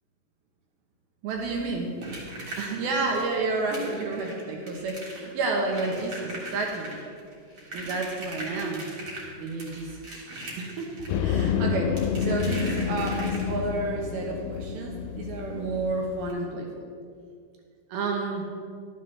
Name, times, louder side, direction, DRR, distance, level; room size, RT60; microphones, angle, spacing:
voice 1, 1.2-2.0 2.6-7.0 7.7-9.0 9.4-9.9 10.6-16.7 17.9-18.5, right 3 dB, 75° right, 1 dB, 2.2 m, -30 dB
sound 1, 1.3-13.8 15.3-15.4 15.7-15.8 16.2-16.3, right 1 dB, 55° right, 1.6 m, -41 dB
sound 2, 11.1-16.3, left 7 dB, 90° left, 3.2 m, -29 dB
12.0 x 11.5 x 3.3 m, 2.2 s
omnidirectional pair, 5.8 m